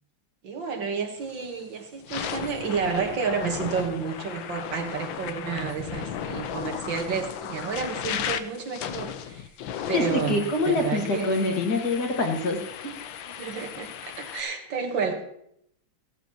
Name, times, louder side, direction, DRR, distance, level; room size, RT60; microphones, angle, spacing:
voice 1, 0.4-9.5 9.9-10.4 10.6-11.3 13.3-15.2, right 5 dB, 75° right, 4 dB, 2.1 m, -30 dB
sound 1, 1.2-1.5 1.9-14.4, left 9 dB, 90° left, 1.5 m, -35 dB
voice 2, 9.9-12.9, left 2 dB, 55° left, 1 dB, 2.4 m, -25 dB
16.0 x 13.0 x 3.0 m, 0.72 s
omnidirectional pair, 2.1 m